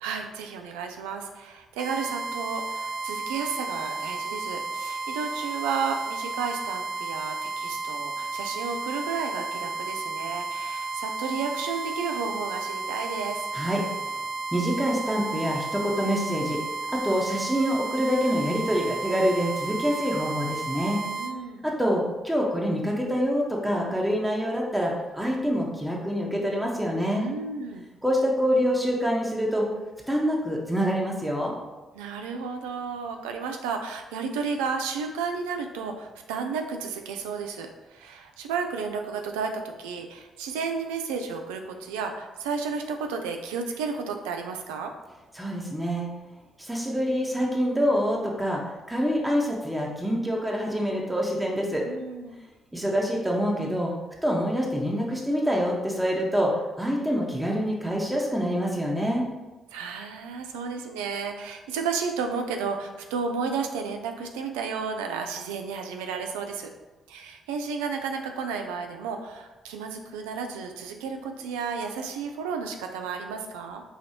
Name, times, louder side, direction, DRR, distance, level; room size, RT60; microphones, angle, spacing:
voice 1, 0.0-13.5 21.2-21.6 27.2-27.8 31.9-44.9 51.9-52.4 59.7-66.7 67.1-73.8, right 5 dB, 85° right, 4 dB, 0.4 m, -32 dB
sound 1, 1.8-21.3, right 3 dB, 50° right, 0.7 m, -33 dB
voice 2, 14.5-16.6 16.9-21.0 21.6-27.3 28.0-29.7 30.1-31.6 45.3-46.1 46.6-51.8 52.7-53.9 54.2-59.3, equal, 10° right, -2 dB, 1.0 m, -26 dB
4.8 x 2.6 x 2.8 m, 1.1 s
hypercardioid pair, 45°, 0 cm